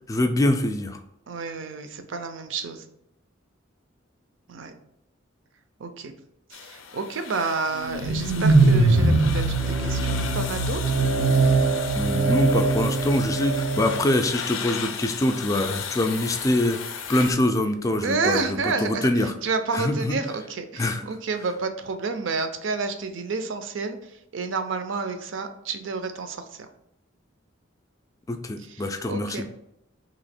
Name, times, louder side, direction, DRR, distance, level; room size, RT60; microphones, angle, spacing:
voice 1, 0.1-1.0 11.9-16.8 17.1-19.3 19.7-20.2 20.8-21.1 28.3-29.5, left 1 dB, 15° left, 6 dB, 0.3 m, -24 dB
voice 2, 1.3-2.8 4.5-4.7 5.8-6.1 6.5-11.0 18.0-19.1 19.4-24.0 24.3-26.7 28.7-29.4, right 4 dB, 70° right, 8 dB, 0.5 m, -30 dB
sound 1, 6.5-17.3, left 7 dB, 80° left, 0.4 m, -36 dB
sound 2, 7.8-14.1, right 3 dB, 90° right, 0.8 m, -21 dB
3.0 x 2.7 x 4.2 m, 0.77 s
head